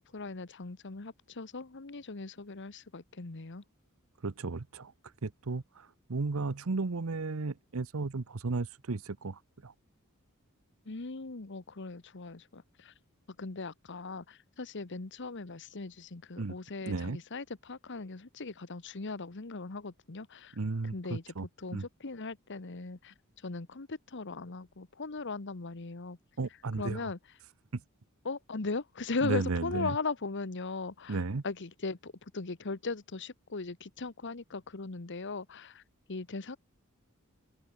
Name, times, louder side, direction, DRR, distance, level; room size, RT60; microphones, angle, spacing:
voice 1, 0.0-3.6 10.9-12.9 13.4-20.6 20.9-23.1 23.4-26.2 26.8-27.2 28.2-31.2 31.4-35.8 36.1-36.6, left 3 dB, 60° left, 1.2 m, -38 dB
voice 2, 4.2-4.9 5.2-9.7 16.4-16.5 16.8-17.2 20.6-21.5 21.7-21.9 26.4-27.1 27.7-27.8 29.2-30.0 31.1-31.4, right 3 dB, 70° right, 0.8 m, -34 dB
open air
head